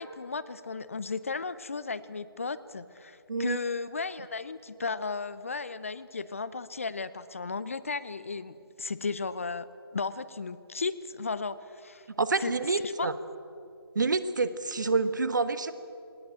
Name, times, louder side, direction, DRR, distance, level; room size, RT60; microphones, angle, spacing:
voice 1, 0.0-9.7 9.9-12.1 12.4-12.5 12.8-13.1, left 4 dB, 35° left, 15 dB, 0.5 m, -35 dB
voice 2, 12.2-13.1 13.9-15.7, right 4 dB, 50° right, 13 dB, 1.2 m, -27 dB
19.0 x 19.0 x 8.9 m, 2.5 s
figure-of-eight pair, 160°, 13 cm